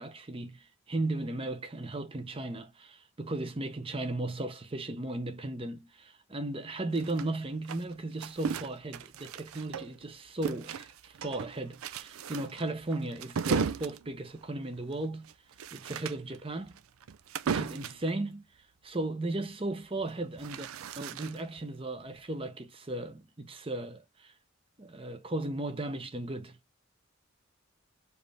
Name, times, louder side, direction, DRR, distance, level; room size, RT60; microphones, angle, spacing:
voice 1, 0.0-15.3 15.7-16.8 17.5-18.4 18.8-20.7 21.0-24.3 24.8-26.6, right 2 dB, 25° right, 0.8 m, -36 dB
sound 1, 6.9-10.1 10.4-18.1 20.0-21.6, right 6 dB, 85° right, 0.4 m, -36 dB
4.7 x 3.2 x 3.3 m
head